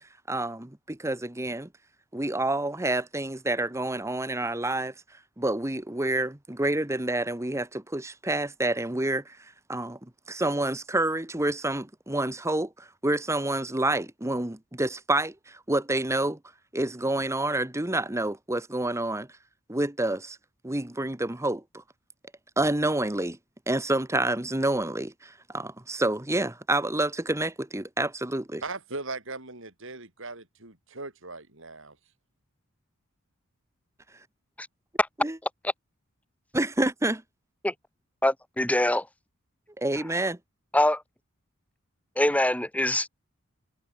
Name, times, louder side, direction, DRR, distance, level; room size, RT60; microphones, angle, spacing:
voice 1, 0.3-1.7 2.1-4.9 5.4-9.4 9.7-10.0 10.3-16.4 16.7-19.3 19.7-20.4 20.6-21.6 22.6-23.4 23.7-28.6 35.2-35.4 36.5-37.2 39.8-40.4, right 2 dB, 15° right, 1.2 m, -28 dB
voice 2, 28.6-32.0, right 3 dB, 60° right, 6.2 m, -39 dB
voice 3, 38.2-39.1 40.7-41.0 42.2-43.1, left 1 dB, 5° left, 1.9 m, -24 dB
head